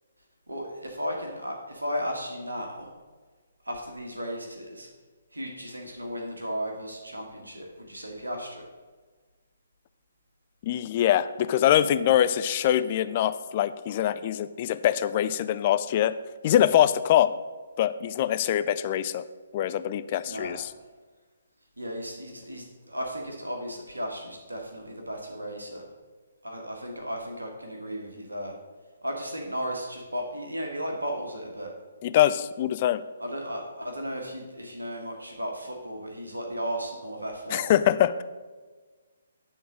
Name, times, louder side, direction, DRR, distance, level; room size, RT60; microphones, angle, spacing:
voice 1, 0.5-2.9 3.6-4.9 5.3-8.6 20.2-20.6 21.8-25.8 26.4-28.5 29.0-31.7 33.2-37.7, equal, 75° right, 1 dB, 1.6 m, -35 dB
voice 2, 10.6-16.1 16.4-17.3 17.8-19.2 19.5-20.7 32.0-33.0 37.5-38.2, left 11 dB, 35° left, 13 dB, 0.3 m, -23 dB
10.0 x 3.9 x 6.2 m, 1.4 s
figure-of-eight pair, 135°, 0 cm